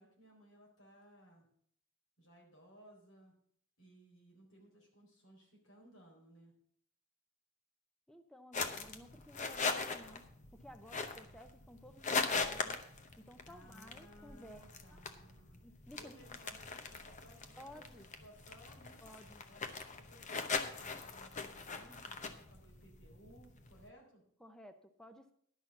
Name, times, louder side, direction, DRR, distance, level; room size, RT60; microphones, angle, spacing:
voice 1, 0.0-1.5 2.2-3.3 3.8-6.5 13.4-15.6 15.9-19.1 19.4-24.2, right 1 dB, 85° left, 0 dB, 4.1 m, -61 dB
voice 2, 8.1-10.3 10.5-12.8 13.2-14.6 14.9-15.0 15.6-16.1 16.7-16.8 17.6-18.1 19.0-19.4 24.4-25.3, left 1 dB, 5° left, 8 dB, 0.5 m, -55 dB
sound 1, 8.5-23.9, left 4 dB, 35° left, 0.8 m, -41 dB
11.0 x 6.1 x 7.0 m, 0.65 s
head